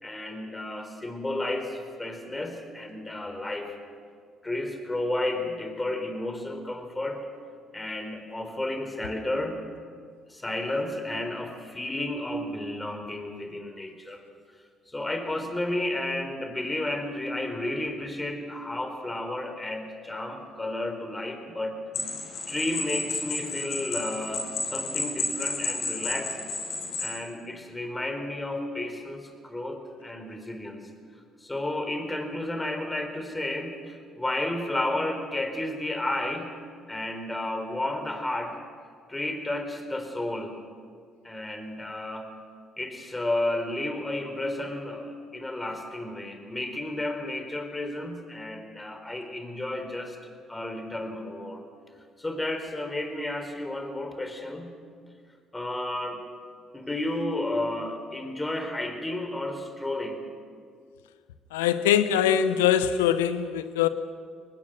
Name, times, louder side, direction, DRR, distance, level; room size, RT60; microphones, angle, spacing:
voice 1, 0.0-3.7 4.4-7.3 7.7-9.6 10.3-14.2 14.9-21.8 22.5-26.4 27.0-30.8 31.4-36.5 36.9-38.6 39.1-40.6 41.2-42.3 42.8-51.6 52.2-54.7 55.5-56.2 56.7-60.2, left 1 dB, 20° left, 6 dB, 4.4 m, -32 dB
sound 1, 21.9-27.2, left 3 dB, 60° left, 4.2 m, -32 dB
voice 2, 61.5-63.9, left 9 dB, 85° left, 12 dB, 0.9 m, -22 dB
24.5 x 19.5 x 6.3 m, 2.1 s
hypercardioid pair, 50°, 0 cm